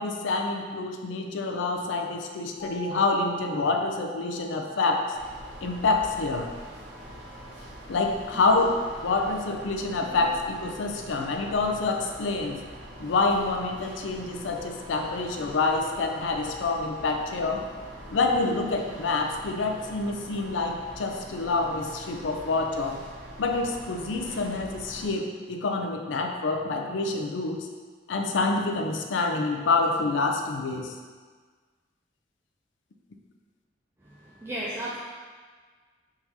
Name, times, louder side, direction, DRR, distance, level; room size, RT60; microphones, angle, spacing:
voice 1, 0.0-5.2 5.6-6.5 7.9-12.6 13.0-17.6 18.1-23.0 23.4-27.7 28.1-31.0, left 3 dB, 80° left, 3 dB, 0.4 m, -27 dB
sound 1, 2.6-7.3, right 8 dB, 50° right, 1.4 m, -43 dB
sound 2, 5.1-25.1, equal, 75° right, 0.9 m, -44 dB
voice 2, 34.0-35.0, right 1 dB, 15° right, -7 dB, 0.3 m, -35 dB
3.7 x 2.7 x 4.5 m, 1.5 s
head